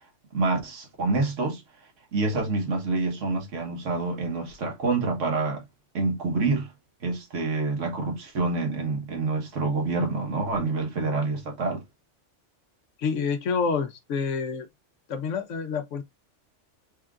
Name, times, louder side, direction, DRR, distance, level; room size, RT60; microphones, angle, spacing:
voice 1, 0.3-1.6 2.1-5.6 5.9-6.7 7.0-11.8, right 3 dB, 90° right, 1.6 m, -27 dB
voice 2, 13.0-14.7 15.1-16.0, left 5 dB, 90° left, 1.1 m, -28 dB
3.7 x 3.6 x 2.3 m
omnidirectional pair, 1.2 m